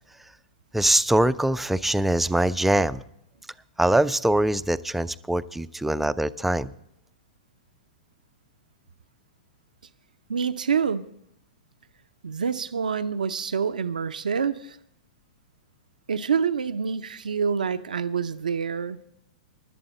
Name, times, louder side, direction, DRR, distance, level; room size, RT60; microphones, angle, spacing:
voice 1, 0.7-3.0 3.8-6.7, right 1 dB, 5° right, 13 dB, 0.5 m, -23 dB
voice 2, 10.3-11.1 12.2-14.8 16.1-19.0, right 6 dB, 80° right, 10 dB, 0.6 m, -27 dB
16.5 x 11.5 x 4.2 m, 0.75 s
hypercardioid pair, 110°, 4 cm